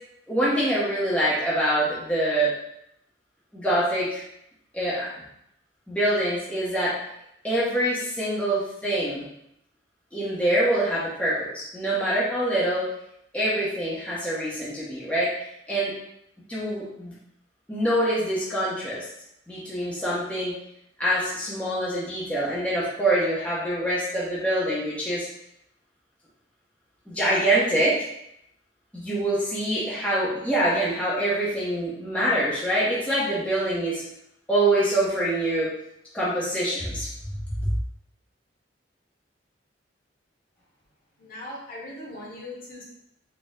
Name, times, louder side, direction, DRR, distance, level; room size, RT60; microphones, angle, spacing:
voice 1, 0.3-2.5 3.5-4.2 4.7-5.1 5.9-6.9 7.4-9.3 10.1-12.8 13.3-15.3 15.7-15.9 16.5-17.1 17.7-19.0 19.5-20.6 21.0-25.3 27.1-28.1 28.9-34.0 34.5-35.7 36.1-37.1 37.6-37.7, right 1 dB, 5° left, -8 dB, 0.7 m, -25 dB
voice 2, 41.2-42.8, left 1 dB, 50° left, -5 dB, 1.1 m, -39 dB
4.2 x 2.1 x 3.5 m, 0.76 s
head